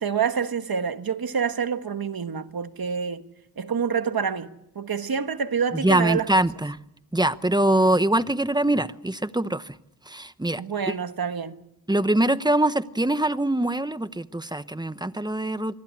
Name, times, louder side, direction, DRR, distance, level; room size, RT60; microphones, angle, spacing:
voice 1, 0.0-3.2 3.6-6.3 10.6-11.6, right 6 dB, 85° right, 1.4 m, -27 dB
voice 2, 5.7-6.8 7.1-9.7 10.1-10.6 11.9-15.8, right 1 dB, 10° right, 0.9 m, -23 dB
26.0 x 19.5 x 8.4 m
wide cardioid pair, 85°, 35 cm